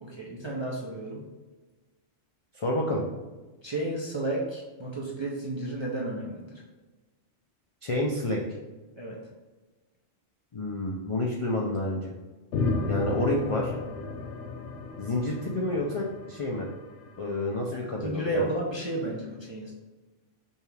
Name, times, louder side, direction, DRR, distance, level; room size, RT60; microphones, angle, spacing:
voice 1, 0.0-1.2 3.6-6.5 9.0-9.2 17.7-19.7, right 1 dB, 35° right, -4 dB, 0.4 m, -32 dB
voice 2, 2.5-3.0 7.8-8.4 10.5-12.1 12.9-13.7 15.0-16.7 17.2-18.5, left 1 dB, 55° left, -2 dB, 0.3 m, -29 dB
sound 1, 12.5-17.2, left 3 dB, 70° left, 0.9 m, -33 dB
5.3 x 2.4 x 3.3 m, 1.2 s
omnidirectional pair, 1.3 m